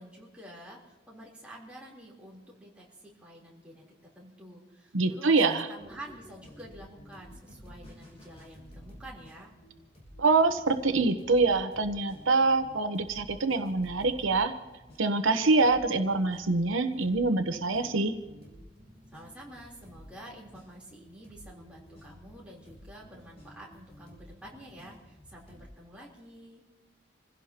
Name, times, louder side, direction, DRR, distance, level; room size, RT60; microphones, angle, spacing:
voice 1, 0.0-9.5 19.1-26.6, right 1 dB, 5° right, -5 dB, 3.5 m, -49 dB
voice 2, 4.9-5.7 10.2-14.5 15.0-18.1, right 3 dB, 85° right, 8 dB, 0.9 m, -25 dB
sound 1, 5.8-25.7, equal, 30° left, 6.2 m, -52 dB
27.0 x 16.5 x 2.9 m, 1.1 s
head